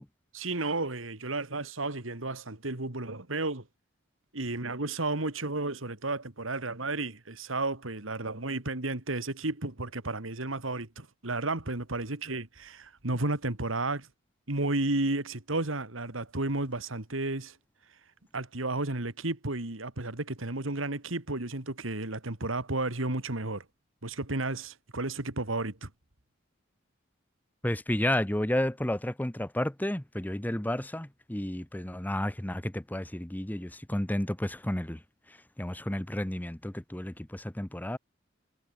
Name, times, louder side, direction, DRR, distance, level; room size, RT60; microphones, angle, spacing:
voice 1, 0.3-3.7 4.3-14.1 14.5-17.6 17.8-23.7 24.0-25.9, right 2 dB, 85° right, 2.6 m, -33 dB
voice 2, 27.6-35.0 35.3-38.0, left 1 dB, 10° left, 0.9 m, -32 dB
head